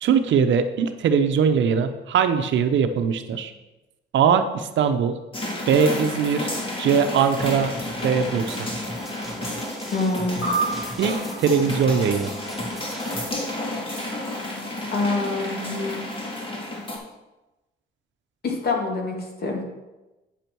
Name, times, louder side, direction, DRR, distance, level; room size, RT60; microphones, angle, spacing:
voice 1, 0.0-3.5 4.1-5.2 5.7-6.5 6.8-7.7 8.0-8.7 11.0-12.3, right 6 dB, 70° right, 8 dB, 0.8 m, -21 dB
sound 1, 5.3-17.0, left 1 dB, 25° left, 2.2 m, -31 dB
sound 2, 7.4-13.3, equal, ahead, 1.1 m, -39 dB
voice 2, 9.9-10.6 14.9-16.0 18.4-19.6, left 3 dB, 50° left, 1 dB, 2.2 m, -26 dB
sound 3, 10.4-13.1, right 3 dB, 75° left, 2.8 m, -31 dB
9.2 x 6.8 x 4.6 m, 1.0 s
cardioid pair, 90°, 20 cm